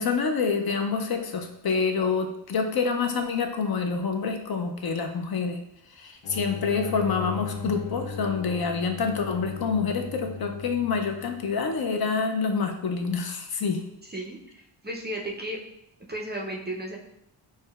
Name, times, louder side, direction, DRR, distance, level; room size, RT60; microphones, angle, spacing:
voice 1, 0.0-5.6 6.0-13.8, left 5 dB, 50° left, 5 dB, 0.5 m, -27 dB
sound 1, 6.2-11.6, left 5 dB, 70° left, 0.8 m, -37 dB
voice 2, 14.0-15.6 16.1-17.0, right 1 dB, 25° right, -1 dB, 0.4 m, -34 dB
6.3 x 2.1 x 2.2 m, 0.83 s
wide cardioid pair, 95°, 48 cm